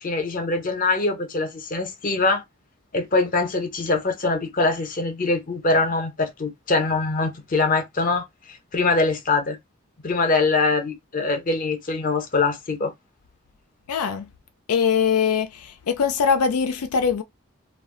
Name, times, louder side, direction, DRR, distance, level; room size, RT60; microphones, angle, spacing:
voice 1, 0.0-2.4 2.9-9.6 10.0-12.9, left 3 dB, 40° left, 0.7 m, -23 dB
voice 2, 13.9-14.3 14.7-17.2, left 6 dB, 85° left, 0.4 m, -22 dB
2.3 x 2.1 x 3.6 m
head